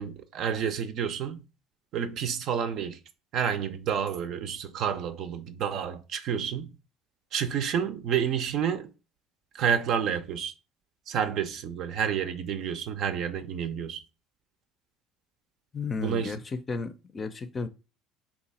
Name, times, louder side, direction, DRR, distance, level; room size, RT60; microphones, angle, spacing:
voice 1, 0.0-1.4 1.9-3.0 3.3-6.7 7.3-8.9 9.5-10.5 11.1-14.0 15.9-16.3, right 8 dB, 60° right, 0.5 m, -29 dB
voice 2, 15.7-17.7, left 4 dB, 30° left, 0.5 m, -33 dB
2.9 x 2.4 x 4.1 m
hypercardioid pair, 75°, 0 cm